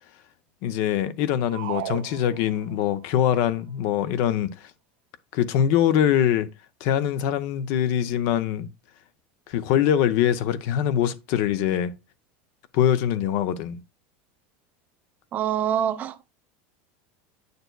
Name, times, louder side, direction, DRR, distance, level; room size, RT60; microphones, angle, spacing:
voice 1, 0.6-4.5 5.3-6.5 6.8-8.7 9.5-11.9 12.7-13.8, left 10 dB, 55° left, 0.6 m, -23 dB
sound 1, 1.5-3.0, right 15 dB, 80° right, 0.4 m, -35 dB
voice 2, 15.3-16.2, right 9 dB, 30° right, 0.5 m, -25 dB
7.9 x 6.7 x 2.2 m
supercardioid pair, 155°, 5 cm